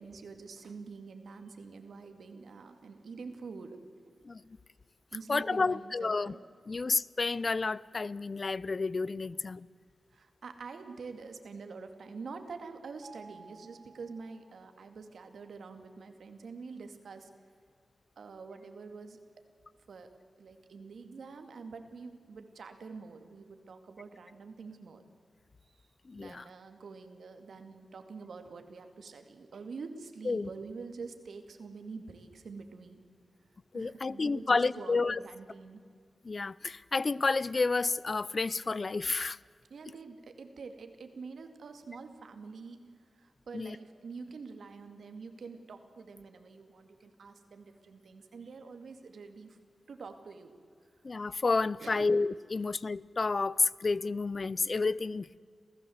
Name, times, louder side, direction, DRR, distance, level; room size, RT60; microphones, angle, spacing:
voice 1, 0.0-3.8 4.1-4.2 5.1-6.4 9.2-9.4 10.1-17.3 18.2-19.2 19.9-20.1 20.4-25.0 25.7-25.8 26.2-33.0 33.7-35.8 39.7-42.8 43.1-49.6 49.9-50.6 51.8-52.2, right 4 dB, 80° right, 7 dB, 2.3 m, -46 dB
voice 2, 5.3-6.3 6.7-9.7 26.1-26.4 30.3-30.5 33.7-35.2 36.2-39.4 43.5-43.8 51.0-55.4, left 3 dB, 45° left, 20 dB, 0.5 m, -30 dB
Mallet percussion, 13.0-15.0, right 4 dB, 45° right, 1.0 m, -55 dB
27.5 x 16.0 x 7.9 m, 2.2 s
wide cardioid pair, 90°, 0 cm